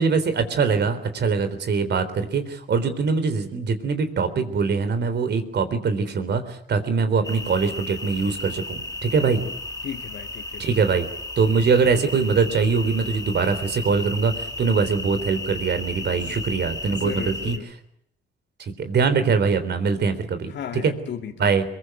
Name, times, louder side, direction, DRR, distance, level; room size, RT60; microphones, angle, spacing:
voice 1, 0.0-9.4 10.6-11.1 11.4-17.6 18.6-20.5 20.8-20.9 21.4-21.6, right 5 dB, 60° right, 10 dB, 3.8 m, -22 dB
sound 1, 7.2-17.6, left 1 dB, 15° left, 2.9 m, -34 dB
voice 2, 9.2-9.5 9.8-10.7 16.1-16.4 16.9-17.7 20.5-21.5, left 8 dB, 65° left, 4 dB, 2.0 m, -35 dB
23.0 x 22.5 x 8.2 m, 0.72 s
cardioid pair, 90°, 20 cm